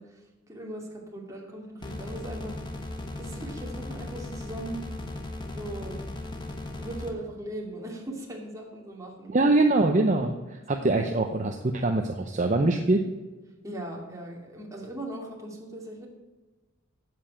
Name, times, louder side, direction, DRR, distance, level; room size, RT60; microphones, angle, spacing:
voice 1, 0.0-4.8 5.5-6.0 6.8-9.6 10.8-11.1 13.6-16.1, right 1 dB, 15° right, -1 dB, 2.5 m, -39 dB
sound 1, 1.8-7.1, left 2 dB, 25° left, 1.3 m, -37 dB
voice 2, 9.3-13.0, right 2 dB, 40° right, 4 dB, 0.7 m, -23 dB
9.7 x 7.8 x 8.8 m, 1.2 s
head